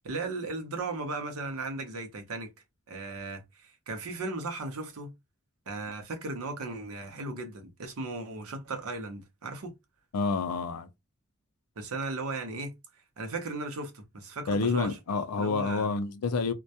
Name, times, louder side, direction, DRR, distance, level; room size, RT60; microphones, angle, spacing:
voice 1, 0.0-2.5 2.9-5.1 5.7-9.7 11.8-12.7 13.2-15.0 15.4-15.9, right 3 dB, 75° right, 0.7 m, -36 dB
voice 2, 10.1-10.9 14.5-16.5, left 4 dB, 85° left, 0.4 m, -28 dB
2.2 x 2.2 x 2.7 m
head